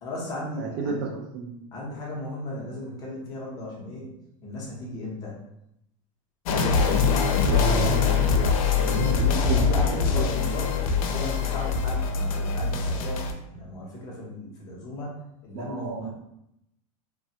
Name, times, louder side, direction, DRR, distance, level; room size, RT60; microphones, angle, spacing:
voice 1, 0.0-1.0 1.7-4.1 4.4-5.4 8.7-10.7 11.0-15.2 15.4-16.1, left 1 dB, 20° left, -3 dB, 0.6 m, -36 dB
voice 2, 0.6-1.6 7.5-8.1 8.8-10.6 15.5-16.1, right 5 dB, 40° right, 1 dB, 0.4 m, -32 dB
sound 1, 6.4-13.3, left 5 dB, 85° left, 0.5 m, -23 dB
3.2 x 2.1 x 2.7 m, 0.81 s
supercardioid pair, 180°, 18 cm